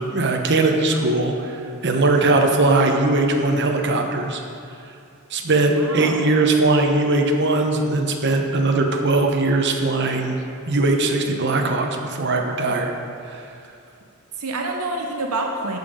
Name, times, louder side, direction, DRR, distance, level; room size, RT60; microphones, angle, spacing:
voice 1, 0.0-4.4 5.3-10.4 10.7-12.9 13.3-13.4, right 2 dB, 55° right, 2 dB, 1.0 m, -20 dB
voice 2, 5.8-6.5 14.3-15.8, right 2 dB, 80° right, 2 dB, 0.7 m, -27 dB
14.0 x 5.5 x 5.3 m, 2.5 s
head